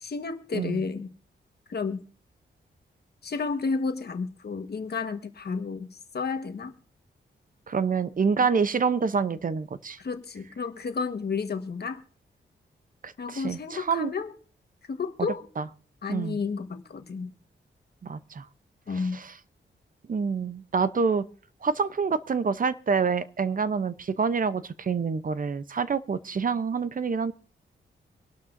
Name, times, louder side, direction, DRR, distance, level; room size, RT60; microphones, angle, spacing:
voice 1, 0.0-1.1 1.7-2.0 3.2-6.7 10.0-12.0 13.2-14.3 14.9-15.5 16.0-17.3 18.9-19.2, left 4 dB, 55° left, 7 dB, 1.4 m, -31 dB
voice 2, 7.7-10.0 13.0-14.1 15.2-15.3 15.6-15.7 16.1-16.4 18.0-18.5 18.9-19.3 20.1-21.3 21.6-27.3, right 5 dB, 45° right, 14 dB, 0.7 m, -27 dB
24.5 x 12.0 x 2.6 m, 0.40 s
wide cardioid pair, 100°, 20 cm